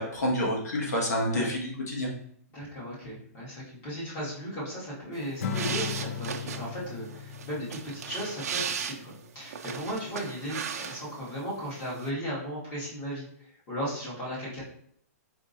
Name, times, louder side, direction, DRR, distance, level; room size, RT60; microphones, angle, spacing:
voice 1, 0.0-2.1, equal, 85° left, -2 dB, 1.6 m, -28 dB
voice 2, 2.5-14.6, equal, 25° left, -7 dB, 1.9 m, -36 dB
sound 1, 5.2-11.3 11.6-12.1, right 7 dB, 70° right, 0.6 m, -37 dB
Acoustic guitar / Strum, 5.4-8.7, left 7 dB, 65° left, 0.4 m, -37 dB
5.2 x 3.5 x 2.6 m, 0.65 s
hypercardioid pair, 170°, 9 cm